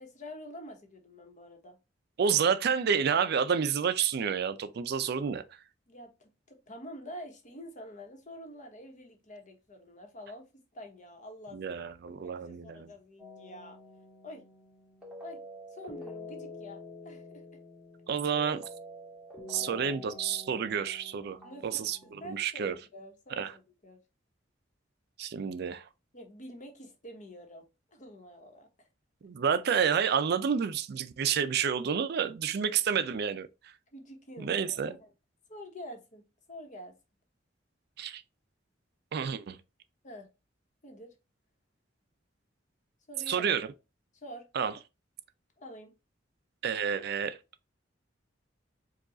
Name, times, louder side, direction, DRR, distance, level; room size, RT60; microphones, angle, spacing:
voice 1, 0.0-1.8 5.9-13.8 14.2-14.5 15.2-15.4 15.7-17.4 19.6-19.9 21.4-24.0 26.1-28.9 33.9-35.1 35.5-36.9 40.0-40.3 40.8-41.1 43.1-43.6 44.1-44.5 45.6-45.9, equal, 45° left, 1.1 m, -47 dB
voice 2, 2.2-5.4 11.5-12.9 18.1-18.6 19.5-22.7 23.4-23.5 25.2-25.9 29.2-33.7 34.4-35.0 38.0-38.2 39.1-39.6 43.3-43.7 44.5-44.7 46.6-47.4, right 7 dB, 60° right, 0.4 m, -29 dB
sound 1, 13.2-22.3, left 2 dB, 5° right, 1.4 m, -47 dB
4.8 x 2.4 x 3.8 m
head